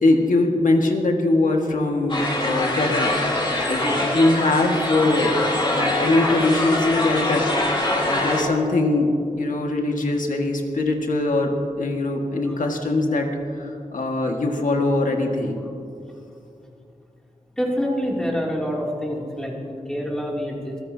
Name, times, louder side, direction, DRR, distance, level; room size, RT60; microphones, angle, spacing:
voice 1, 0.0-3.2 3.7-3.8 4.1-5.4 5.7-7.4 8.0-9.1 9.4-11.5 11.8-13.3 13.6-15.6, left 2 dB, 80° left, 2 dB, 1.7 m, -21 dB
sound 1, 2.1-8.4, left 1 dB, 35° left, 4.0 m, -23 dB
voice 2, 17.6-20.8, equal, 5° left, -3 dB, 2.8 m, -26 dB
22.5 x 15.0 x 2.8 m, 2.6 s
wide cardioid pair, 100°, 13 cm